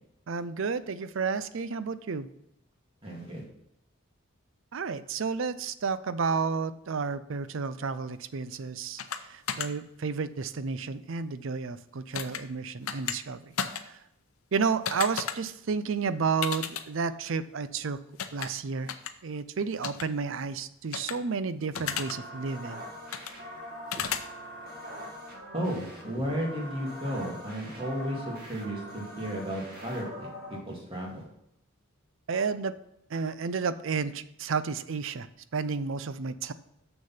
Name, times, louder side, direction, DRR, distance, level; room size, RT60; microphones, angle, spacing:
voice 1, 0.3-2.3 4.7-9.0 9.3-13.5 13.9-14.0 14.5-18.0 18.3-18.9 19.2-22.8 32.3-32.7 33.1-35.3 35.5-36.5, right 5 dB, 65° right, 14 dB, 0.5 m, -31 dB
voice 2, 3.0-3.4 25.5-30.3 30.6-31.2, equal, 25° right, -2 dB, 2.3 m, -33 dB
sound 1, 9.0-9.2 9.5-9.7 12.1-12.4 12.9-13.2 13.6-13.8 14.9-15.3 16.4-16.8 18.2-18.5 18.9-19.1 19.8-20.0 20.9-21.1 21.7-22.1 23.1-23.3 23.9-24.2, left 8 dB, 85° left, 0.7 m, -32 dB
sound 2, 21.7-30.6, equal, 45° right, 2.1 m, -43 dB
7.0 x 6.4 x 5.6 m, 0.79 s
head